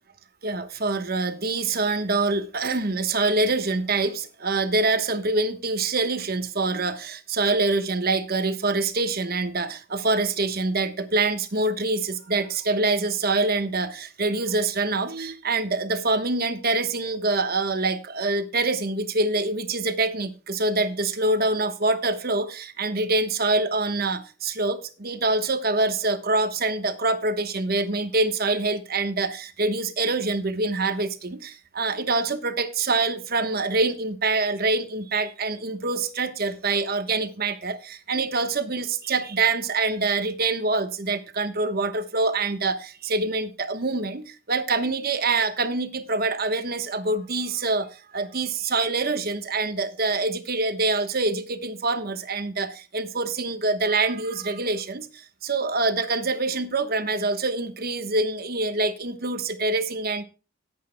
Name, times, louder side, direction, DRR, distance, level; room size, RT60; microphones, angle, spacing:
voice 1, 0.4-60.2, right 3 dB, 45° right, 1.1 m, -25 dB
18.0 x 8.4 x 2.2 m
head